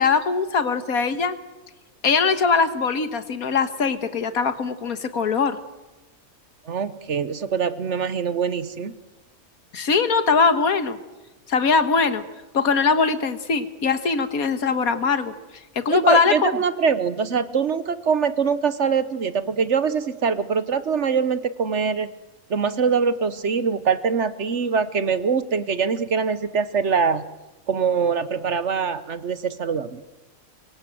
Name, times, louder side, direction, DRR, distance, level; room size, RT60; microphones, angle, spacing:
voice 1, 0.0-1.4 2.0-5.6 9.7-11.0 11.5-12.2 12.5-15.3 15.8-16.5, left 5 dB, 75° left, 11 dB, 1.9 m, -21 dB
voice 2, 6.7-9.0 15.9-22.1 22.5-27.2 27.7-30.0, right 6 dB, 55° right, 14 dB, 1.3 m, -23 dB
25.0 x 24.0 x 7.7 m, 1.1 s
omnidirectional pair, 1.6 m